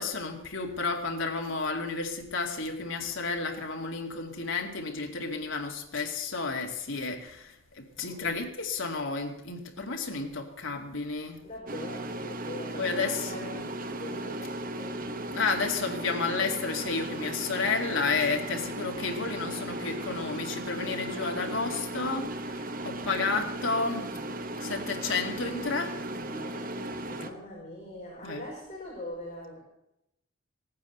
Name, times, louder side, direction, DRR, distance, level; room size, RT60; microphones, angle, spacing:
voice 1, 0.0-11.4 12.8-13.6 15.3-24.1 24.6-25.9 28.2-28.4, left 4 dB, 65° left, 2 dB, 2.4 m, -31 dB
voice 2, 8.0-8.4 11.4-13.6 13.9-15.0 26.3-29.6, equal, 30° left, -5 dB, 5.7 m, -42 dB
sound 1, 11.7-27.3, right 1 dB, 45° right, 1.1 m, -36 dB
17.0 x 9.4 x 8.0 m, 0.85 s
head